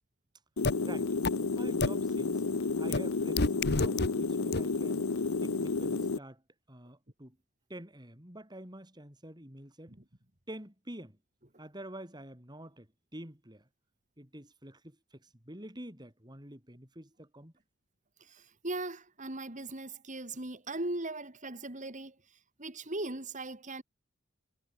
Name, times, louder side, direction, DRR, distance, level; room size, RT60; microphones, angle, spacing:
sound 1, 0.6-6.2, left 3 dB, 85° left, 0.8 m, -31 dB
sound 2, 0.6-0.7 1.2-1.3 1.8-1.9 2.9-3.0 3.4-4.1 4.5-4.6, left 3 dB, 55° left, 1.3 m, -27 dB
voice 1, 0.8-1.1 1.5-2.4 2.8-5.0 5.4-6.4 6.7-7.4 7.7-9.9 10.5-11.2 11.6-13.7 14.2-17.5, right 1 dB, 20° right, 6.4 m, -47 dB
voice 2, 18.3-22.1 22.6-23.8, right 2 dB, 40° right, 2.9 m, -39 dB
head